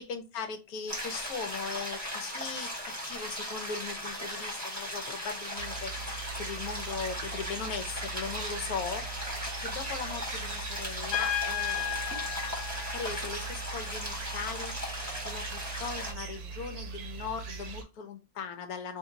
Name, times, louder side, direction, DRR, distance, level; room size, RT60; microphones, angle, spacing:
voice 1, 0.0-12.1 12.9-19.0, left 5 dB, 65° left, 7 dB, 1.0 m, -39 dB
sound 1, 0.9-16.1, equal, 10° right, 0.9 m, -37 dB
sound 2, 5.5-17.8, right 5 dB, 80° right, 1.4 m, -41 dB
Trumpet, 11.1-13.8, left 10 dB, 85° left, 1.3 m, -34 dB
3.2 x 2.7 x 3.8 m, 0.28 s
omnidirectional pair, 2.0 m